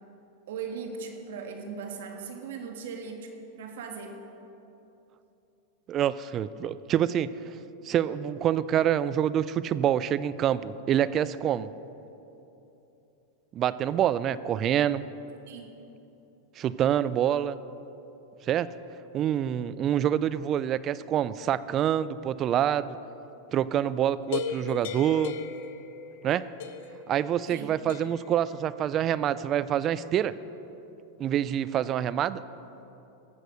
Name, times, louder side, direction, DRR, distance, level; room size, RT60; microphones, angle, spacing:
voice 1, 0.5-4.1 15.5-15.7 27.5-27.7, right 5 dB, 75° right, 4 dB, 1.6 m, -38 dB
voice 2, 5.9-7.5 7.8-11.7 13.5-15.1 16.6-17.6 18.4-18.7 19.1-23.0 23.5-25.3 26.2-26.5 27.1-30.3 31.2-32.4, right 10 dB, 35° right, 16 dB, 0.4 m, -26 dB
sound 1, 24.3-26.3 26.6-27.1 27.9-28.3, left 5 dB, 70° left, 0.9 m, -36 dB
14.5 x 6.6 x 6.3 m, 3.0 s
hypercardioid pair, 120°, 0 cm